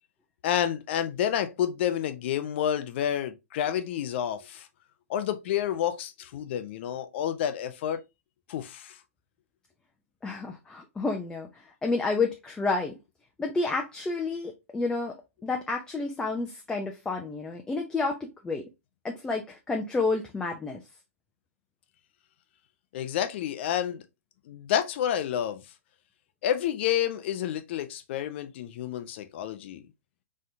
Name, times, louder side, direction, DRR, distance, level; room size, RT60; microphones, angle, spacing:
voice 1, 0.4-4.7 5.1-8.0 8.5-9.0 22.9-24.0 24.5-25.6 26.4-29.8, left 10 dB, 50° left, 0.6 m, -29 dB
voice 2, 10.2-13.0 13.4-15.1 15.4-18.6 19.0-20.8, left 3 dB, 10° left, 0.6 m, -30 dB
4.2 x 3.6 x 2.6 m
figure-of-eight pair, 110°, 8 cm